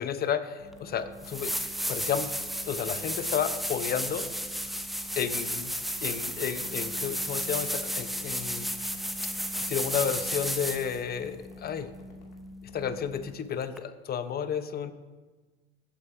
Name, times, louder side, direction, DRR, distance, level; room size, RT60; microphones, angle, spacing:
voice 1, 0.0-1.5 1.9-2.3 2.7-4.3 5.2-5.7 6.0-8.7 9.7-11.9 12.7-14.9, left 8 dB, 30° left, 11 dB, 1.0 m, -32 dB
sound 1, 0.6-13.3, equal, 75° left, 2.6 m, -47 dB
sound 2, 0.7-0.8 1.2-11.0 13.8-13.9, equal, ahead, 0.7 m, -33 dB
23.0 x 8.8 x 2.8 m, 1.3 s
hypercardioid pair, 85°, 33 cm